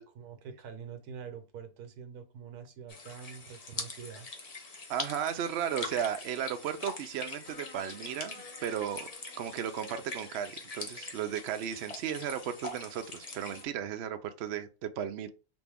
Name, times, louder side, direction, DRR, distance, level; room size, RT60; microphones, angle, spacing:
voice 1, 0.0-4.3, right 7 dB, 90° right, 1.3 m, -45 dB
sound 1, 2.9-13.6, left 3 dB, 40° left, 0.6 m, -43 dB
voice 2, 4.9-9.1 9.4-15.3, right 9 dB, 65° right, 0.7 m, -35 dB
4.1 x 2.6 x 3.5 m
omnidirectional pair, 1.6 m